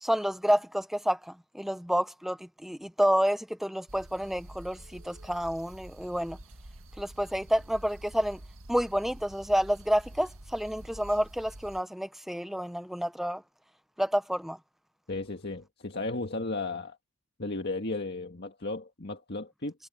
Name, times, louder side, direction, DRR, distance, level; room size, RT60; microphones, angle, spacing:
voice 1, 0.0-6.4 7.0-8.4 8.7-13.4 14.0-14.6, equal, ahead, 0.7 m, -29 dB
sound 1, 3.9-11.8, right 1 dB, 65° right, 1.8 m, -48 dB
voice 2, 15.1-17.0 17.4-19.7, left 2 dB, 45° left, 1.9 m, -34 dB
head